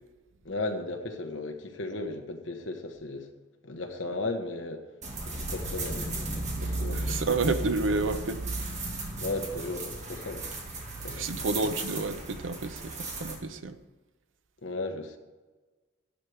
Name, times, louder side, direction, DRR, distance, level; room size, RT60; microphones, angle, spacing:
voice 1, 0.4-3.3 3.6-4.8 5.2-7.2 9.2-10.6 11.0-11.5 14.6-15.2, left 2 dB, 70° left, 4 dB, 1.2 m, -36 dB
sound 1, 5.0-13.4, right 2 dB, 35° right, 1.9 m, -35 dB
voice 2, 6.9-8.4 11.1-13.8, right 3 dB, 75° right, 9 dB, 0.7 m, -30 dB
12.5 x 11.0 x 3.4 m, 1.3 s
head